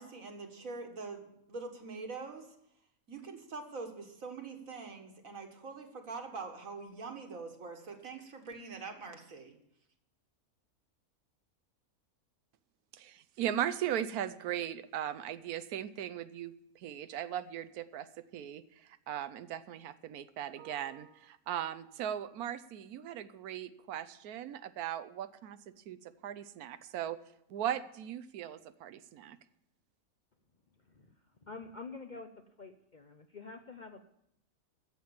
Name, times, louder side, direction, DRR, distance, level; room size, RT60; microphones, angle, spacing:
voice 1, 0.0-2.6 3.1-9.5, right 4 dB, 65° right, 4 dB, 2.1 m, -44 dB
voice 2, 12.9-18.1 18.3-27.2 27.5-29.4, right 10 dB, 85° right, 13 dB, 1.2 m, -38 dB
voice 3, 30.8-32.3 32.6-34.1, left 4 dB, 45° left, 6 dB, 0.6 m, -48 dB
13.5 x 7.7 x 7.1 m, 0.76 s
omnidirectional pair, 1.5 m